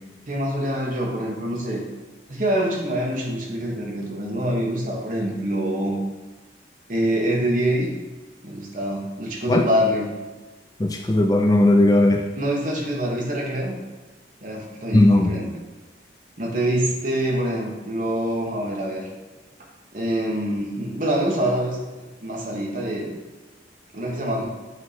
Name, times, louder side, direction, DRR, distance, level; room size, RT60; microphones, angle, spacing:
voice 1, 0.3-1.8 2.3-6.0 6.9-7.9 8.4-10.1 12.3-13.8 14.4-15.5 16.4-19.1 19.9-21.8 22.2-23.1 23.9-24.5, right 1 dB, 45° right, -1 dB, 1.4 m, -25 dB
voice 2, 10.8-12.3 14.9-15.3, left 1 dB, 20° left, 4 dB, 0.4 m, -17 dB
8.8 x 3.7 x 4.2 m, 1.2 s
head